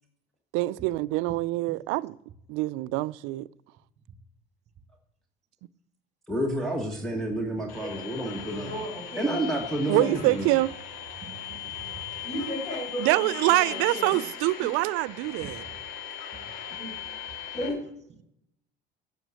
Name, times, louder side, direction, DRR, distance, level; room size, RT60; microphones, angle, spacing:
voice 1, 0.5-2.1 2.5-3.5 9.9-10.7 13.0-15.6, right 19 dB, 80° right, 0.4 m, -25 dB
voice 2, 6.3-8.7 9.2-10.5, right 1 dB, ahead, 1.4 m, -30 dB
sound 1, 7.7-17.7, left 9 dB, 90° left, 2.1 m, -39 dB
voice 3, 7.8-9.5 9.9-10.0 12.2-14.2 14.6-14.7 16.8-17.0 17.5-17.8, left 1 dB, 30° left, 5.4 m, -35 dB
voice 4, 11.2-12.3 16.3-16.8, right 6 dB, 35° right, 1.7 m, -46 dB
9.3 x 7.1 x 6.4 m
supercardioid pair, 95°, 21 cm